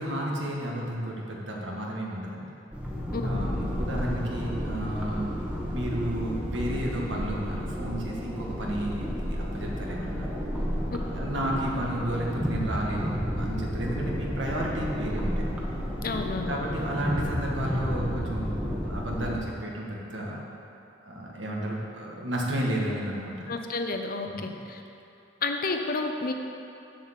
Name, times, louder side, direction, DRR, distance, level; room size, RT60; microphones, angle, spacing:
voice 1, 0.0-2.5 3.2-5.3 5.7-10.3 11.1-15.5 16.5-20.4 21.0-23.5 24.3-24.6, right 1 dB, 75° right, -3 dB, 1.8 m, -32 dB
sound 1, 2.7-19.3, equal, 5° right, 1.3 m, -31 dB
voice 2, 16.0-16.6 23.5-24.3 24.7-24.8 25.4-26.3, left 3 dB, 50° left, 4 dB, 0.8 m, -30 dB
7.8 x 7.3 x 7.4 m, 2.8 s
head